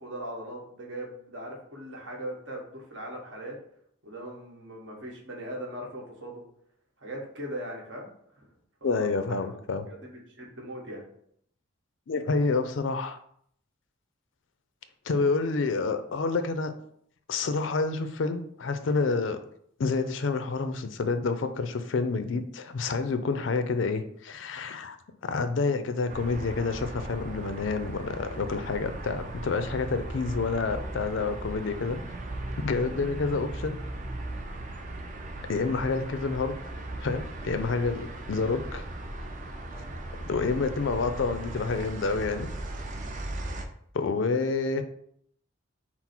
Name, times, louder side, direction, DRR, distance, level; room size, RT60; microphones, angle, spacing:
voice 1, 0.0-3.6 4.0-6.4 7.0-8.5 8.8-9.6 9.9-11.0, right 1 dB, 65° right, -1 dB, 1.3 m, -40 dB
voice 2, 8.8-9.9 12.1-13.2 15.1-16.7 17.3-19.4 19.8-25.0 25.2-32.0 32.6-33.8 35.4-36.5 37.0-38.8 40.3-42.5 43.9-44.8, left 4 dB, 65° left, 9 dB, 0.4 m, -28 dB
sound 1, 26.1-43.7, right 1 dB, 40° right, 0.5 m, -38 dB
5.9 x 2.0 x 4.3 m, 0.67 s
head